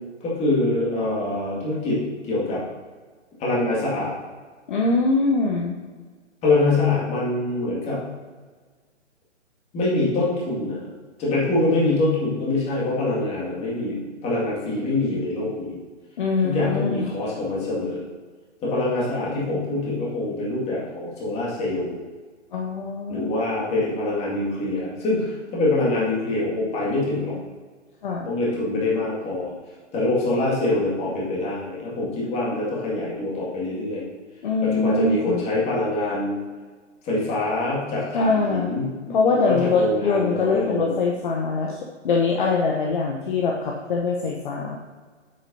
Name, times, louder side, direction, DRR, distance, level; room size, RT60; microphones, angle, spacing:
voice 1, 0.2-2.6 3.4-4.1 6.4-8.0 9.7-10.8 11.2-14.0 14.2-15.8 16.4-18.0 18.6-22.0 23.1-27.3 28.2-29.5 29.9-34.1 34.6-36.4 37.0-41.0, left 2 dB, 15° left, -6 dB, 2.1 m, -24 dB
voice 2, 4.7-5.8 16.2-17.0 22.5-23.4 28.0-28.3 34.4-35.4 38.1-38.7 39.1-41.8 42.0-44.8, left 4 dB, 45° left, 0 dB, 0.8 m, -23 dB
8.8 x 7.7 x 2.7 m, 1.5 s
figure-of-eight pair, 130°, 36 cm